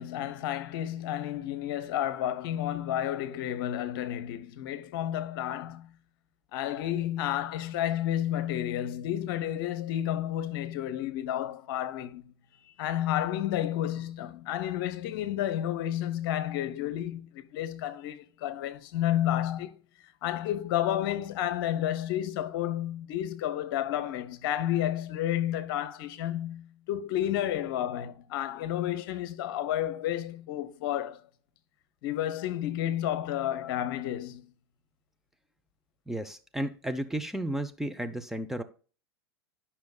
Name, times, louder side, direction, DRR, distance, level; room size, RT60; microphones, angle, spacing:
voice 1, 0.0-5.9 6.5-12.3 12.7-19.7 20.2-31.2 32.0-34.5, left 12 dB, 55° left, 0.9 m, -31 dB
voice 2, 36.1-38.6, right 1 dB, 5° right, 0.6 m, -33 dB
11.5 x 5.7 x 2.3 m
figure-of-eight pair, 95°, 14 cm